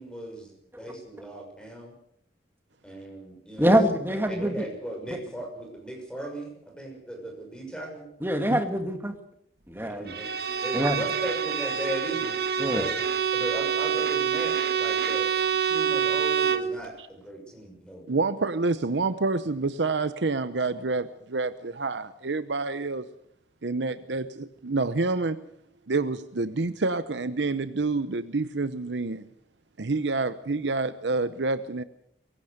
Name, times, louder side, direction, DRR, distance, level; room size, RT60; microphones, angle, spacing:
voice 1, 0.0-1.9 2.8-3.8 4.1-6.5 6.8-8.0 9.7-10.3 10.6-12.3 12.7-12.9 13.3-15.3 15.6-18.1, right 1 dB, 5° left, 2 dB, 6.2 m, -37 dB
voice 2, 3.6-4.7 5.1-5.2 8.2-9.2 9.7-10.1 10.7-11.0 12.6-12.9, equal, 10° right, 6 dB, 2.0 m, -24 dB
Bowed string instrument, 10.1-16.7, right 8 dB, 55° right, 1.7 m, -26 dB
voice 3, 18.1-23.1 23.6-25.4 25.9-29.3 29.8-31.8, right 3 dB, 75° right, 13 dB, 0.8 m, -28 dB
23.5 x 16.5 x 6.7 m, 0.74 s
head